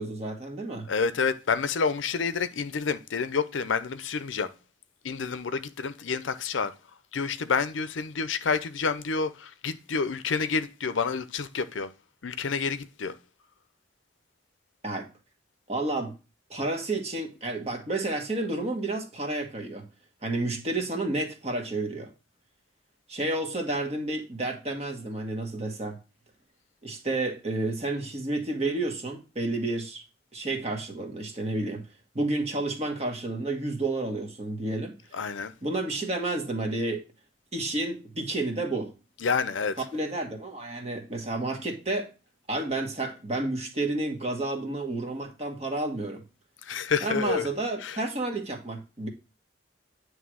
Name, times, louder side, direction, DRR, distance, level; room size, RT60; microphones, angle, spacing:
voice 1, 0.0-0.9 14.8-15.1 15.7-16.2 16.5-19.9 20.2-22.1 23.1-26.0 26.8-30.0 30.3-31.8 32.1-34.9 35.6-37.0 37.5-38.9 39.9-42.1 42.5-46.2 47.0-49.1, right 2 dB, 35° right, 1.4 m, -30 dB
voice 2, 0.9-4.5 5.0-6.7 7.1-11.9 12.2-13.2 35.1-35.5 39.2-39.8 46.6-47.5 47.8-48.0, left 5 dB, 85° left, 0.6 m, -29 dB
9.4 x 3.3 x 6.2 m
head